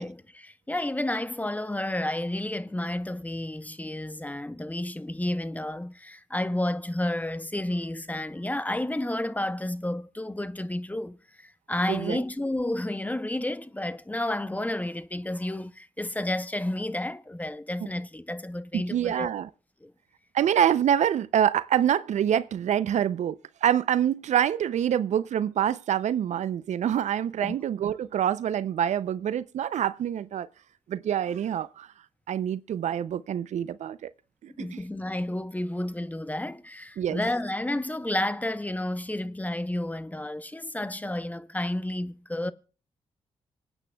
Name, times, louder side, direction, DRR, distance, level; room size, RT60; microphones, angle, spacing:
voice 1, 0.0-19.3 19.8-19.9 27.4-27.6 34.5-42.5, left 1 dB, 10° left, 0.8 m, -31 dB
voice 2, 11.9-12.2 18.7-19.5 20.3-30.5 30.9-31.9 32.3-34.1 34.4-34.8 37.0-37.2, right 10 dB, 70° right, 0.5 m, -26 dB
25.5 x 8.9 x 2.3 m
supercardioid pair, 45°, 12 cm